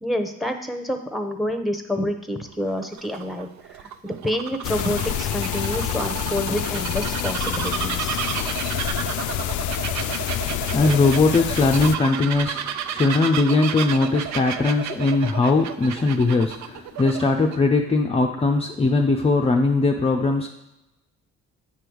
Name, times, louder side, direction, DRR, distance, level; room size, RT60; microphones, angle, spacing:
voice 1, 0.0-8.2, left 1 dB, ahead, 6 dB, 0.9 m, -28 dB
Bird vocalization bird call bird song, 2.5-17.6, right 9 dB, 70° right, 0.5 m, -32 dB
sound 1, 4.6-12.0, left 13 dB, 75° left, 0.4 m, -27 dB
voice 2, 10.7-20.5, left 3 dB, 20° left, 2 dB, 0.5 m, -20 dB
8.6 x 3.4 x 6.2 m, 0.95 s
cardioid pair, 90°, 30 cm